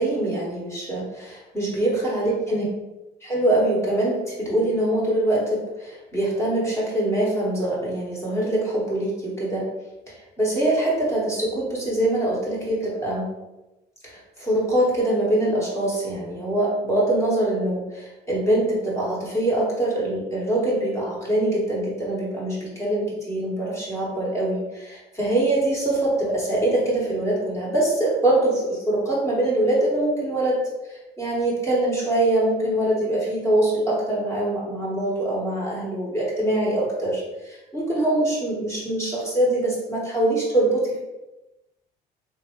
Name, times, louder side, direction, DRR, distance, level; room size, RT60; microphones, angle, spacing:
voice 1, 0.0-2.6 3.2-9.7 10.1-13.3 14.0-30.6 30.9-41.0, right 1 dB, 15° left, -5 dB, 1.2 m, -23 dB
3.4 x 2.8 x 3.0 m, 1.0 s
cardioid pair, 110°, 17 cm